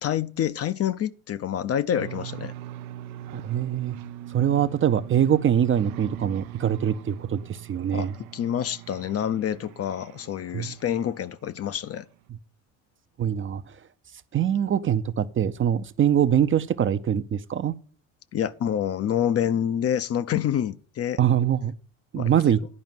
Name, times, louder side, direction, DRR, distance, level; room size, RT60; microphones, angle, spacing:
voice 1, 0.0-2.5 7.9-12.1 18.3-21.2 22.1-22.3, left 9 dB, 35° left, 0.6 m, -27 dB
sound 1, 1.9-11.5, right 14 dB, 75° right, 0.7 m, -41 dB
voice 2, 3.3-4.0 4.3-8.1 10.5-10.8 13.2-13.6 14.3-17.7 21.2-21.7 22.1-22.6, right 9 dB, 30° right, 0.6 m, -23 dB
11.0 x 5.0 x 7.3 m
hypercardioid pair, 70°, 42 cm